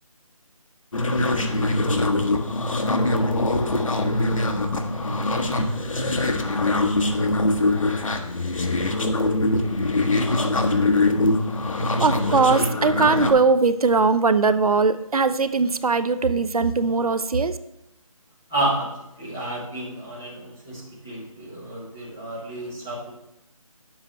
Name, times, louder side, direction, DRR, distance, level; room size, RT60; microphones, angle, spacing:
sound 1, 0.9-13.3, left 2 dB, 60° left, 1.2 m, -23 dB
voice 1, 12.0-17.6, right 4 dB, 80° right, 12 dB, 0.7 m, -20 dB
voice 2, 18.5-18.9 19.2-23.1, right 1 dB, 5° right, -8 dB, 0.6 m, -30 dB
10.5 x 7.3 x 3.2 m, 0.83 s
figure-of-eight pair, 170°, 19 cm